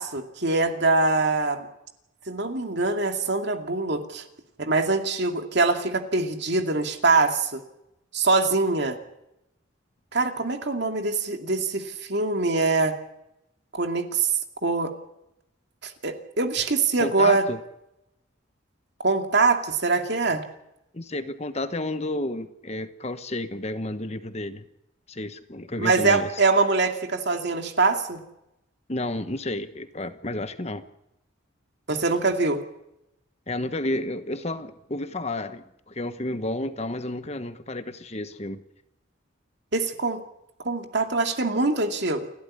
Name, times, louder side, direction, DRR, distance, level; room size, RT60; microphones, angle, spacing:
voice 1, 0.0-1.7 2.3-4.2 4.6-7.6 8.1-9.0 10.1-12.9 13.7-14.3 14.6-14.9 15.8-17.4 19.0-20.4 25.8-28.2 31.9-32.6 39.7-40.2 40.6-42.3, right 3 dB, 55° right, 5 dB, 2.4 m, -23 dB
voice 2, 17.0-17.6 20.9-24.6 25.1-26.3 28.9-30.8 33.5-38.6, left 1 dB, 30° left, 10 dB, 1.1 m, -31 dB
29.5 x 12.0 x 9.7 m, 0.87 s
head